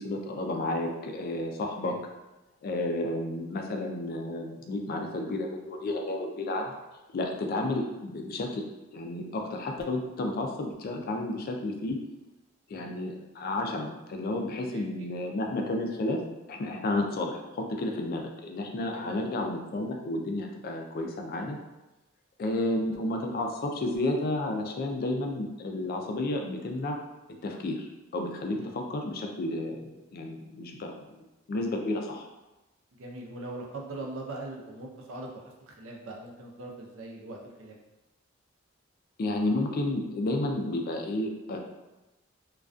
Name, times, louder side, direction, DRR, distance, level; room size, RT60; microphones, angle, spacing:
voice 1, 0.0-1.9 2.6-6.7 7.1-8.6 8.9-12.0 12.7-16.2 16.5-21.6 22.4-27.0 27.4-31.2 31.5-32.3 39.2-41.6, left 2 dB, 50° left, 2 dB, 0.3 m, -31 dB
voice 2, 14.6-15.1 18.9-19.2 22.6-22.8 28.5-28.7 33.0-37.8, right 2 dB, 75° right, 0 dB, 0.5 m, -42 dB
2.3 x 2.2 x 2.4 m, 1.0 s
head